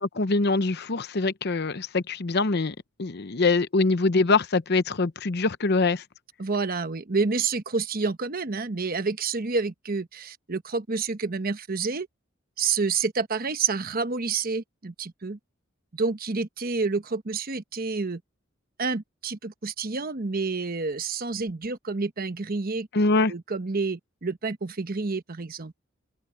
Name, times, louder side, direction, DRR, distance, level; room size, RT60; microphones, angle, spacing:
voice 1, 0.0-6.0 22.9-23.3, left 3 dB, 55° left, 0.8 m, -24 dB
voice 2, 6.4-12.1 12.6-15.4 15.9-18.2 18.8-22.9 23.3-25.7, right 4 dB, 45° right, 1.0 m, -29 dB
open air
head